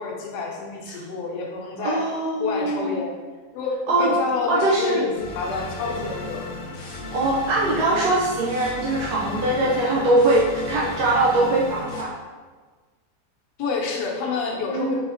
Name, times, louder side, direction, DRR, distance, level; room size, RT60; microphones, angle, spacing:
voice 1, 0.0-2.1 2.4-3.2 3.5-6.5 13.6-15.0, left 4 dB, 80° left, 0 dB, 1.3 m, -28 dB
voice 2, 1.8-3.0 3.9-4.1 4.5-5.1 7.1-12.1 14.6-15.0, right 2 dB, 75° right, -5 dB, 1.1 m, -22 dB
sound 1, 5.2-12.0, left 3 dB, 60° left, 0.5 m, -34 dB
4.1 x 3.4 x 2.5 m, 1.4 s
omnidirectional pair, 1.8 m